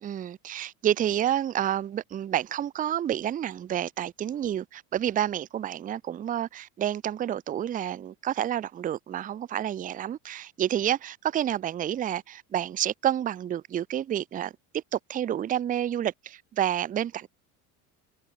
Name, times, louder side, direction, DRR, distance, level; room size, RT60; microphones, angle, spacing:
voice 1, 0.0-17.3, right 11 dB, 20° right, 0.4 m, -29 dB
supercardioid pair, 90°, 44 cm